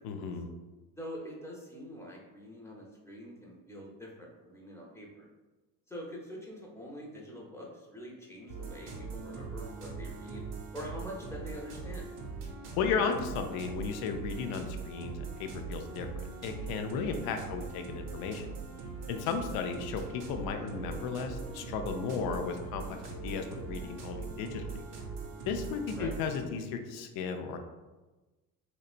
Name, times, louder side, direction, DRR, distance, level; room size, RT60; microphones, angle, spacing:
voice 1, 0.0-0.5 12.8-18.5 19.1-24.8 25.5-27.6, left 5 dB, 60° left, 6 dB, 0.5 m, -35 dB
voice 2, 1.0-5.3 5.9-10.4 10.7-12.1 25.9-26.1, equal, 5° left, -3 dB, 0.7 m, -45 dB
sound 1, 8.5-26.4, right 4 dB, 50° right, 0.6 m, -41 dB
2.8 x 2.1 x 2.4 m, 1.2 s
hypercardioid pair, 65°, 41 cm